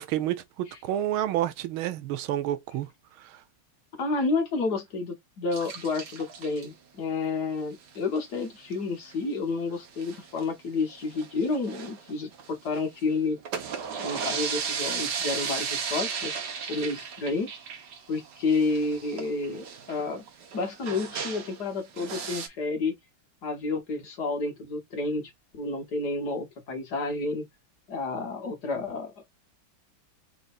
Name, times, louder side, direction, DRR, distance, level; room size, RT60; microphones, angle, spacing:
voice 1, 0.0-2.9 3.2-3.4, right 12 dB, 85° right, 1.5 m, -29 dB
voice 2, 4.0-13.4 14.0-16.4 16.7-17.5 18.1-20.2 20.5-22.9 23.4-25.3 25.6-27.5 27.9-29.1, left 3 dB, 55° left, 1.7 m, -30 dB
sound 1, 5.5-6.7 7.9-8.2 8.4-8.5 8.7-8.8 9.1-9.2 9.8-10.4 10.9-12.8 13.3-21.6 22.0-22.5, right 6 dB, 60° right, 1.4 m, -35 dB
4.0 x 4.0 x 2.5 m
omnidirectional pair, 2.2 m